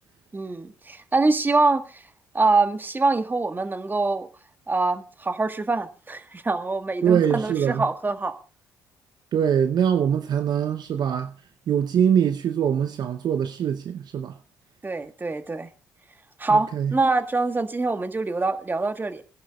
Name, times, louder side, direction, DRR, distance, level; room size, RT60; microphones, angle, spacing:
voice 1, 0.3-2.0 2.3-4.3 4.7-8.4 14.8-15.7 16.4-19.2, right 3 dB, 25° right, 1.5 m, -24 dB
voice 2, 7.0-7.8 9.3-11.3 11.7-14.3 16.7-16.9, right 8 dB, 60° right, 0.8 m, -23 dB
25.5 x 11.5 x 2.4 m
hypercardioid pair, 50°, 8 cm